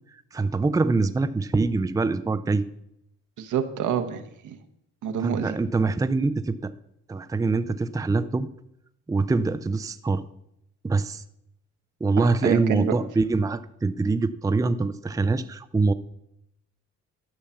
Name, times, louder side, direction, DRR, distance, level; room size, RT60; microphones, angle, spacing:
voice 1, 0.3-2.6 5.2-6.7 7.1-8.5 9.1-10.2 10.8-11.2 12.0-15.9, right 3 dB, 10° right, 11 dB, 0.5 m, -24 dB
voice 2, 3.4-4.6 5.0-5.6 12.2-12.9, right 8 dB, 75° right, 7 dB, 1.2 m, -27 dB
12.0 x 5.7 x 7.0 m, 0.80 s
cardioid pair, 90°, 30 cm